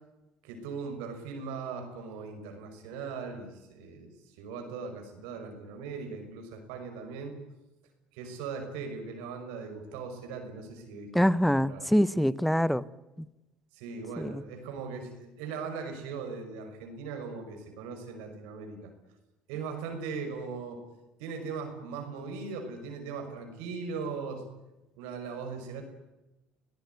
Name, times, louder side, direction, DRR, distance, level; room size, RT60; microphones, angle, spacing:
voice 1, 0.4-7.4 8.1-11.9 13.7-18.9 19.5-20.8 21.2-24.5 25.0-25.8, right 5 dB, 85° right, 5 dB, 6.0 m, -39 dB
voice 2, 11.1-12.8 13.2-13.3 14.2-14.4, equal, ahead, 18 dB, 1.1 m, -25 dB
23.0 x 17.5 x 9.6 m, 1.0 s
supercardioid pair, 85°, 4 cm